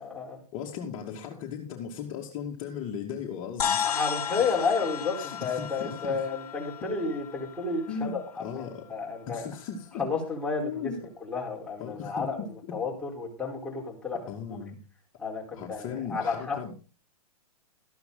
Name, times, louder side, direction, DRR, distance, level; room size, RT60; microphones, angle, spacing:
voice 1, 0.0-0.4 3.8-9.4 10.0-10.9 11.2-12.4 12.7-14.2 15.2-16.7, left 4 dB, 5° left, -2 dB, 4.3 m, -31 dB
voice 2, 0.5-4.0 4.3-4.5 5.2-6.2 7.9-8.9 9.3-10.0 10.6-11.0 11.8-12.5 14.3-14.8 15.5-16.7, left 7 dB, 30° left, -2 dB, 2.5 m, -37 dB
sound 1, 3.6-8.2, left 8 dB, 75° left, 1.6 m, -33 dB
13.5 x 11.5 x 4.0 m, 0.33 s
hypercardioid pair, 145°, 20 cm